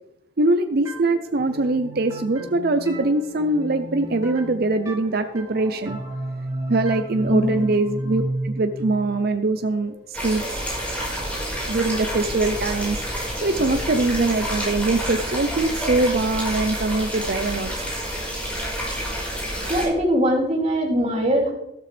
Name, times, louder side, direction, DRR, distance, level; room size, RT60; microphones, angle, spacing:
voice 1, 0.4-6.0 6.7-10.6 11.7-13.0 13.4-17.7, right 2 dB, 50° right, 8 dB, 0.6 m, -22 dB
sound 1, 0.9-10.4, right 1 dB, 20° right, 2.9 m, -33 dB
voice 2, 7.3-7.6 19.7-21.5, equal, 35° right, -2 dB, 3.0 m, -21 dB
sound 2, 10.1-19.9, equal, 5° left, 4.8 m, -28 dB
13.0 x 13.0 x 3.4 m, 0.87 s
head